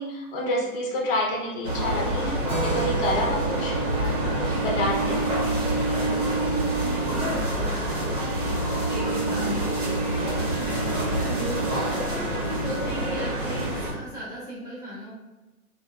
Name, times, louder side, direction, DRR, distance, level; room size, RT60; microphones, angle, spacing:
voice 1, 0.0-3.8 4.6-5.2 9.3-9.5, left 1 dB, 40° left, -1 dB, 0.6 m, -28 dB
sound 1, 1.6-13.9, right 1 dB, 80° right, 1.1 m, -26 dB
Keyboard (musical), 2.5-6.6, right 5 dB, 30° right, 0.5 m, -36 dB
voice 2, 4.1-4.9 5.4-15.1, equal, 10° right, -11 dB, 0.8 m, -39 dB
2.7 x 2.3 x 2.2 m, 1.1 s
hypercardioid pair, 130°, 43 cm